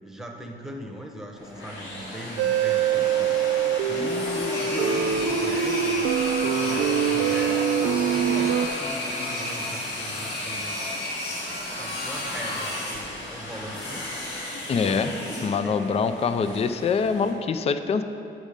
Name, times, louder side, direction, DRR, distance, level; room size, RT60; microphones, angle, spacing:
voice 1, 0.0-3.4 3.9-6.1 6.6-11.0 11.8-14.0 14.7-15.8, equal, ahead, 1 dB, 1.1 m, -39 dB
sound 1, 1.4-17.3, left 1 dB, 80° left, 1.8 m, -33 dB
sound 2, 2.4-8.7, right 8 dB, 70° right, 0.5 m, -24 dB
voice 2, 14.7-15.1 15.4-18.0, left 5 dB, 30° left, 10 dB, 0.4 m, -24 dB
8.8 x 6.3 x 5.1 m, 2.7 s
cardioid pair, 90°, 20 cm